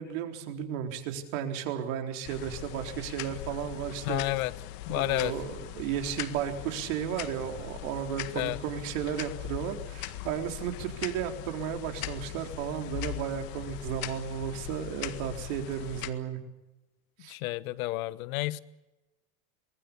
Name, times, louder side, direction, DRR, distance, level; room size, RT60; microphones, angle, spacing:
voice 1, 0.0-4.2 4.9-16.4 17.2-17.3, right 9 dB, 65° right, 4.0 m, -34 dB
sound 1, 2.2-16.1, left 15 dB, 55° left, 1.8 m, -40 dB
voice 2, 4.0-4.5 4.8-5.3 8.3-8.6 17.3-18.6, left 18 dB, 70° left, 1.2 m, -30 dB
23.5 x 21.0 x 7.0 m
supercardioid pair, 110°, 42 cm